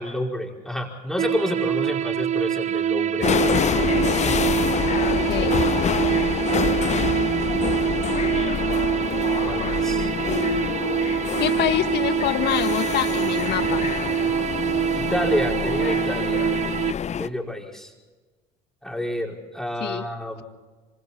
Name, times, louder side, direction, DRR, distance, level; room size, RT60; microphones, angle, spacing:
voice 1, 0.0-3.3 4.2-4.4 5.7-6.4 9.5-10.1 14.9-16.5 17.1-17.9 18.8-20.4, left 1 dB, ahead, -1 dB, 4.8 m, -29 dB
sound 1, 1.2-16.9, right 10 dB, 35° right, 0.6 m, -25 dB
sound 2, 3.2-17.3, left 8 dB, 35° left, 0.8 m, -26 dB
voice 2, 4.9-5.6 11.4-13.8 19.8-20.1, left 12 dB, 55° left, 10 dB, 1.6 m, -26 dB
26.0 x 25.5 x 4.2 m, 1.3 s
hypercardioid pair, 70°, 21 cm